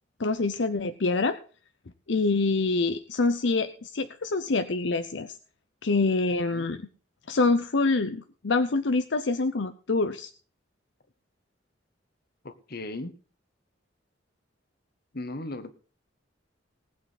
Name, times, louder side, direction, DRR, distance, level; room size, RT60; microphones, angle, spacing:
voice 1, 0.2-1.4 2.1-5.4 5.8-6.8 7.3-10.3, left 3 dB, 75° left, 10 dB, 0.7 m, -26 dB
voice 2, 12.4-13.2 15.1-15.7, left 2 dB, 55° left, 12 dB, 1.5 m, -37 dB
19.0 x 8.6 x 4.1 m, 0.39 s
head